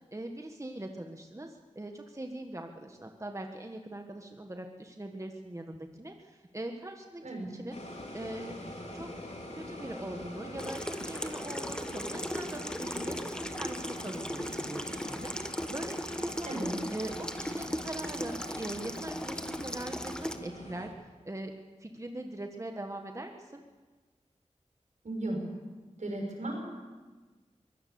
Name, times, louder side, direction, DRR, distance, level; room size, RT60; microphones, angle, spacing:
voice 1, 0.1-7.2 7.5-7.8 8.1-8.6 8.9-9.1 9.5-16.6 16.9-21.5 21.8-23.6, right 1 dB, 25° right, 4 dB, 1.6 m, -41 dB
sound 1, 7.7-20.9, left 1 dB, 65° left, 4.3 m, -44 dB
Water tap faucet / Sink (filling or washing), 10.6-20.4, equal, 5° left, 1.3 m, -37 dB
voice 2, 25.0-25.4 26.0-26.7, right 1 dB, 75° right, 1 dB, 6.2 m, -35 dB
23.0 x 17.0 x 7.1 m, 1.3 s
wide cardioid pair, 60°, 13 cm